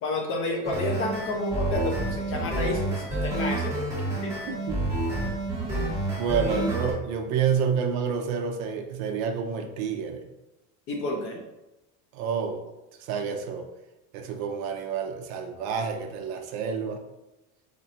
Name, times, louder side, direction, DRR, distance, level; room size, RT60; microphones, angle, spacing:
voice 1, 0.0-4.3 6.4-6.7 10.9-11.4, left 2 dB, 35° left, 2 dB, 0.5 m, -30 dB
sound 1, 0.6-6.9, right 1 dB, 5° right, 1.5 m, -29 dB
voice 2, 4.5-5.1 6.1-10.2 12.1-12.6 13.0-13.7 14.1-17.0, right 6 dB, 50° right, 4 dB, 0.6 m, -29 dB
4.2 x 2.6 x 4.2 m, 0.98 s
cardioid pair, 175°, 41 cm